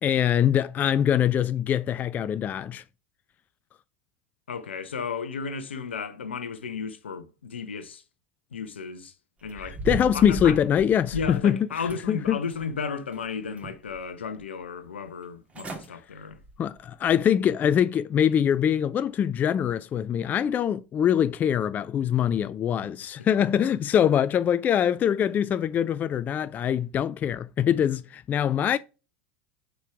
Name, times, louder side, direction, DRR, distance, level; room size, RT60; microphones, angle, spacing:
voice 1, 0.0-2.8 9.9-11.7 12.1-12.4 16.6-28.8, left 9 dB, 30° left, 0.3 m, -23 dB
voice 2, 4.5-8.0 8.5-9.1 9.4-9.8 10.1-10.6 11.1-16.4, left 5 dB, 75° left, 0.8 m, -34 dB
sound 1, 9.4-11.5 11.9-12.7 13.1-14.0 14.4-14.5 15.2-15.3 15.5-15.9 16.3-16.6 17.1-17.2, right 2 dB, 20° right, 2.1 m, -37 dB
5.3 x 4.5 x 4.8 m
figure-of-eight pair, 80°, 6 cm